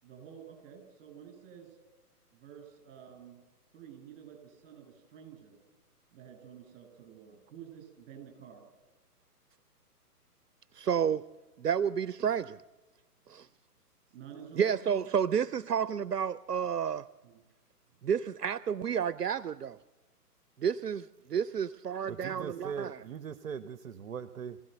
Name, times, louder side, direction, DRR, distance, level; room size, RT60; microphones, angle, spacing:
voice 1, 0.0-1.8 2.3-3.4 3.7-5.6 6.1-8.6 14.1-15.1 17.2-17.3, right 8 dB, 35° right, 5 dB, 7.2 m, -50 dB
voice 2, 10.7-11.2 11.6-12.6 13.3-13.5 14.6-17.1 18.0-19.8 20.6-23.0, right 8 dB, 80° right, 17 dB, 0.7 m, -30 dB
voice 3, 22.1-24.6, right 7 dB, 55° right, 14 dB, 1.0 m, -40 dB
26.0 x 16.5 x 7.9 m, 1.1 s
figure-of-eight pair, 130°, 47 cm